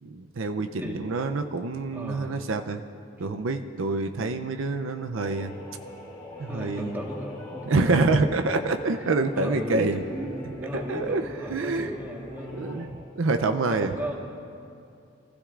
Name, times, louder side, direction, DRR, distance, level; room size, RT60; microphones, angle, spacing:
voice 1, 0.0-2.8 3.2-5.5 6.4-6.9 7.7-10.3 10.7-11.2 11.5-11.9 12.6-12.9 13.2-13.9, right 3 dB, 75° right, 7 dB, 0.6 m, -26 dB
voice 2, 0.8-1.1 1.9-2.4 6.5-8.3 9.3-12.6 13.6-14.2, equal, 10° right, -1 dB, 1.4 m, -35 dB
sound 1, 5.1-12.9, left 1 dB, 25° left, 2.8 m, -43 dB
24.0 x 15.5 x 2.5 m, 2.5 s
head